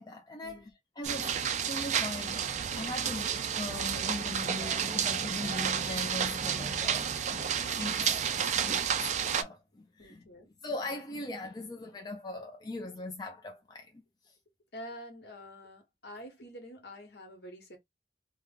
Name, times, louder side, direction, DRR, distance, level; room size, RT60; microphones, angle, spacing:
voice 1, 0.0-1.4 1.7-2.5 2.8-10.2 10.6-14.3, left 2 dB, 20° left, 0.5 m, -40 dB
sound 1, 1.0-9.4, right 8 dB, 40° right, 0.4 m, -31 dB
voice 2, 10.0-10.5 14.7-17.8, equal, 60° left, 1.2 m, -47 dB
3.1 x 2.1 x 3.7 m
head